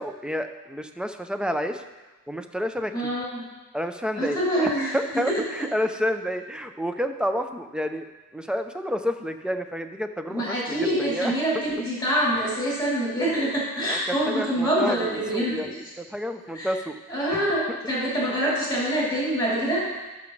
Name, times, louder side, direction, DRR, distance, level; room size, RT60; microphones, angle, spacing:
voice 1, 0.0-1.8 2.3-3.1 3.7-11.5 12.4-12.5 13.8-17.0 17.3-17.8 18.4-18.5, equal, 5° right, 7 dB, 0.4 m, -30 dB
voice 2, 2.9-3.5 4.2-4.9 5.3-5.4 10.3-15.6 16.5-16.7 17.1-19.8, right 1 dB, 10° left, -7 dB, 3.0 m, -25 dB
12.0 x 5.9 x 3.2 m, 1.1 s
wide cardioid pair, 145°, 33 cm